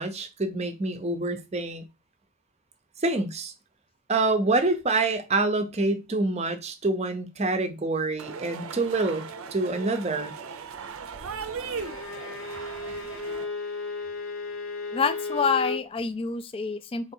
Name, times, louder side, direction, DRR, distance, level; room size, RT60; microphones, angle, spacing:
voice 1, 0.0-1.8 3.0-3.5 4.1-10.3, right 2 dB, 30° right, 0.6 m, -26 dB
sound 1, 8.2-13.4, right 5 dB, 70° right, 0.6 m, -38 dB
Bowed string instrument, 11.8-15.9, left 3 dB, 65° left, 1.0 m, -34 dB
voice 2, 14.9-17.1, left 5 dB, 25° left, 0.3 m, -27 dB
3.7 x 3.0 x 4.5 m
head